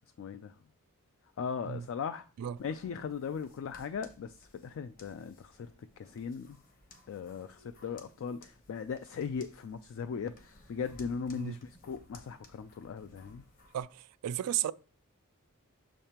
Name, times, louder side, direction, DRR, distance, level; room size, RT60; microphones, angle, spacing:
voice 1, 0.2-0.6 1.4-2.2 2.6-5.7 6.0-6.6 7.1-13.4, left 6 dB, 60° left, 0.3 m, -38 dB
sound 1, 2.6-13.8, left 2 dB, 40° left, 1.0 m, -59 dB
voice 2, 13.7-14.7, right 11 dB, 90° right, 0.3 m, -34 dB
6.4 x 5.2 x 2.9 m
head